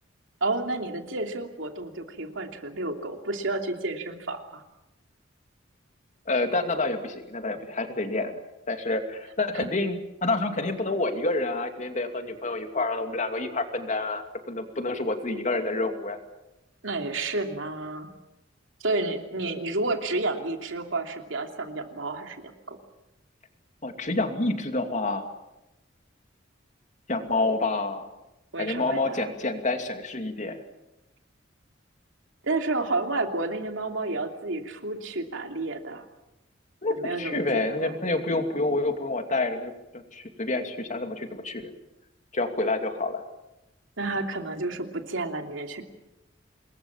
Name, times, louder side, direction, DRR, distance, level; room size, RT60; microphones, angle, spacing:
voice 1, 0.4-4.6 9.5-9.6 16.8-18.1 18.8-22.8 28.5-29.3 32.4-36.0 36.9-38.0 44.0-45.8, right 2 dB, 75° right, 4 dB, 3.0 m, -31 dB
voice 2, 6.3-8.4 8.7-16.2 23.8-25.3 27.1-28.1 28.6-30.6 36.8-41.6 42.3-43.2, left 2 dB, 40° left, 6 dB, 2.7 m, -28 dB
27.0 x 21.5 x 7.3 m, 0.95 s
head